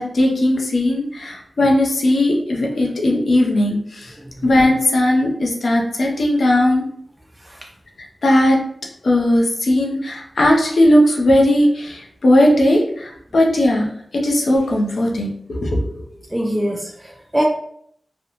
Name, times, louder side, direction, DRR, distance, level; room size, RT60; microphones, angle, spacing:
voice 1, 0.0-4.2 4.4-6.8 8.2-8.6 9.0-16.1, left 1 dB, 75° left, 0 dB, 0.6 m, -17 dB
voice 2, 4.1-4.5 7.4-7.6 16.3-17.4, equal, 15° right, 0 dB, 0.3 m, -24 dB
2.5 x 2.1 x 2.9 m, 0.69 s
cardioid pair, 50°, 0 cm